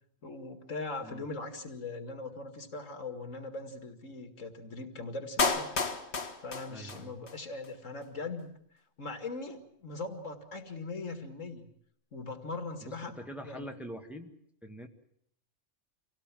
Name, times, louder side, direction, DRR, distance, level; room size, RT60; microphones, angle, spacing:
voice 1, 0.2-5.9 6.4-8.5 9.0-11.7 12.1-13.1 13.4-13.7, left 3 dB, 85° left, 7 dB, 2.5 m, -40 dB
Clapping, 5.4-7.4 7.6-7.7, left 4 dB, 60° left, 1.7 m, -31 dB
voice 2, 6.7-7.2 12.8-14.3 14.6-14.9, equal, ahead, 4 dB, 1.6 m, -44 dB
26.5 x 17.0 x 7.6 m, 0.72 s
omnidirectional pair, 1.3 m